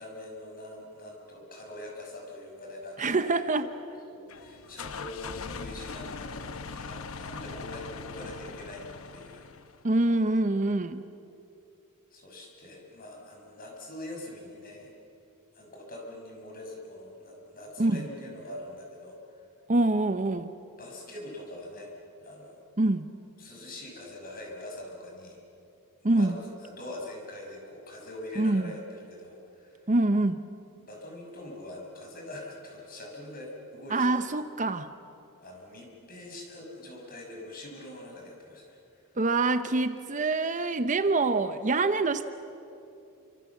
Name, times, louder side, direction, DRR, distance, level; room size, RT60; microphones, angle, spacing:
voice 1, 0.0-3.1 3.6-3.7 4.1-9.5 10.8-10.9 12.1-14.9 15.5-19.2 20.8-21.9 22.2-22.6 23.4-25.4 26.0-29.8 30.8-34.1 35.4-38.8, left 1 dB, 40° left, 0 dB, 6.2 m, -43 dB
voice 2, 3.0-3.7 9.8-11.0 17.8-18.1 19.7-20.5 22.8-23.1 26.0-26.4 28.4-28.7 29.9-30.4 33.9-34.9 39.2-42.3, right 2 dB, 35° right, 10 dB, 0.8 m, -25 dB
sound 1, 4.3-9.9, left 4 dB, 65° left, 0.9 m, -41 dB
29.0 x 25.5 x 7.3 m, 2.7 s
head